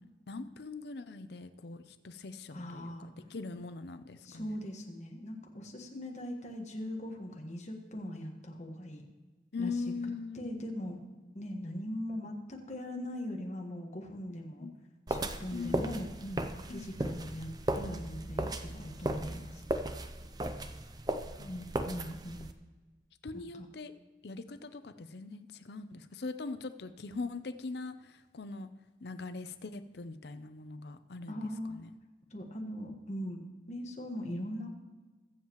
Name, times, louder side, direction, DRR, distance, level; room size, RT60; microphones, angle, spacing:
voice 1, 0.3-4.6 9.5-10.5 14.6-14.7 15.5-15.9 16.7-16.9 21.4-21.8 23.2-23.9 24.2-28.7 29.0-31.4 31.7-31.9, left 3 dB, 65° left, 11 dB, 0.6 m, -41 dB
voice 2, 2.5-3.1 4.2-9.0 9.6-9.8 10.3-11.0 11.3-14.7 15.1-19.6 21.5-22.5 23.3-23.7 31.3-31.8 32.3-34.7, equal, 40° left, 1 dB, 1.5 m, -40 dB
sound 1, 15.1-22.5, right 1 dB, 20° right, 0.5 m, -36 dB
22.0 x 7.4 x 3.0 m, 1.3 s
head